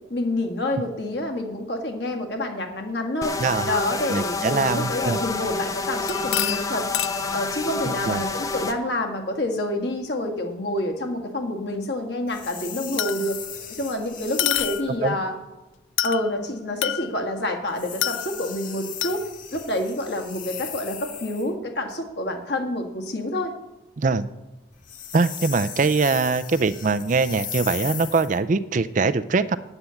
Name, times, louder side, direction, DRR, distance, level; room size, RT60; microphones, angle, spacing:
voice 1, 0.1-3.3 3.6-6.9 7.3-13.4 13.7-15.3 16.0-19.2 19.5-23.5, left 1 dB, 60° left, 3 dB, 1.8 m, -28 dB
sound 1, 3.2-8.7, left 3 dB, 20° left, 0.6 m, -29 dB
voice 2, 3.4-3.7 4.1-5.2 7.8-8.2 15.0-15.1 24.0-24.3 25.1-29.6, right 4 dB, 40° right, 15 dB, 0.4 m, -22 dB
sound 2, 6.1-7.4 10.8-10.9 13.0-13.5 14.4-15.1 16.0-16.4 16.8-17.4 18.0-18.6 19.0-19.2, left 12 dB, 85° left, 0.4 m, -28 dB
sound 3, 12.3-14.9 17.7-21.5 24.7-28.4, left 9 dB, 45° left, 1.0 m, -37 dB
9.7 x 9.0 x 7.0 m, 1.1 s
head